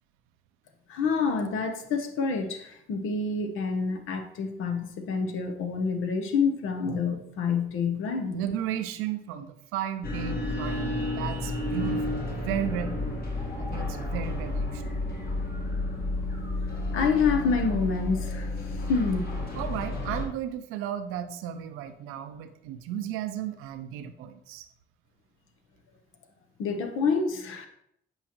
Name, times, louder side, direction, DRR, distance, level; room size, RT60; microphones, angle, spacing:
voice 1, 0.9-8.4 16.9-19.2 26.6-27.7, left 5 dB, 80° left, 6 dB, 0.8 m, -27 dB
voice 2, 8.3-13.0 13.6-15.0 19.5-24.7, right 9 dB, 90° right, 9 dB, 0.5 m, -34 dB
sound 1, 10.0-20.2, left 2 dB, 50° left, 1.6 m, -31 dB
7.9 x 4.7 x 3.0 m, 0.73 s
supercardioid pair, 60°, 21 cm